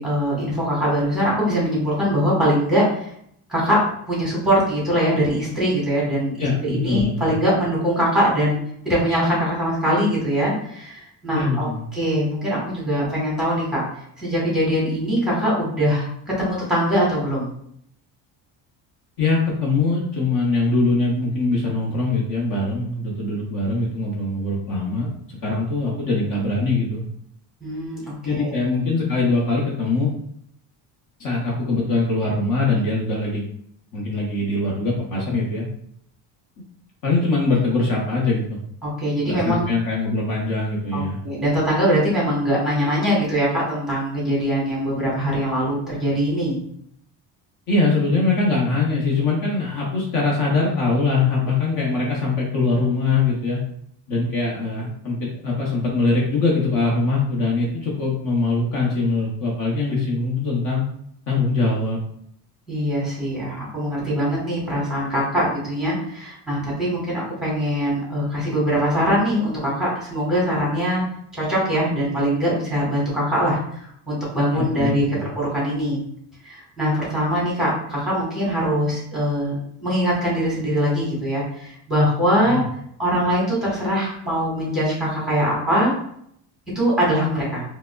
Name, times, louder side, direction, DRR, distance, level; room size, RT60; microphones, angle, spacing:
voice 1, 0.0-3.1 3.5-13.8 14.2-17.5 27.6-28.6 38.8-39.7 40.9-46.6 62.7-71.0 71.3-76.0 76.4-79.5 79.8-82.6 83.0-85.9 86.7-87.6, equal, ahead, -6 dB, 1.3 m, -22 dB
voice 2, 6.4-7.3 11.3-11.9 19.2-25.1 25.4-27.0 28.2-30.1 31.2-33.4 33.9-35.7 37.0-38.6 39.3-41.2 47.7-53.6 54.1-60.9 61.3-62.0 74.5-75.3 82.4-82.6, left 3 dB, 50° left, -3 dB, 0.8 m, -22 dB
4.7 x 2.0 x 2.3 m, 0.69 s
cardioid pair, 155°, 44 cm